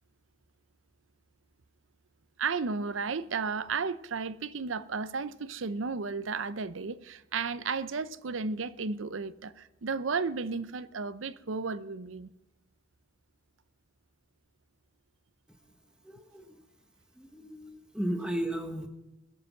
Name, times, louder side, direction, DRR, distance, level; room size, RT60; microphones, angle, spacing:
voice 1, 2.4-12.3, right 4 dB, 80° right, 0.7 m, -33 dB
voice 2, 16.0-16.5 17.2-18.9, right 1 dB, 5° right, 1.3 m, -35 dB
21.5 x 7.9 x 6.1 m
head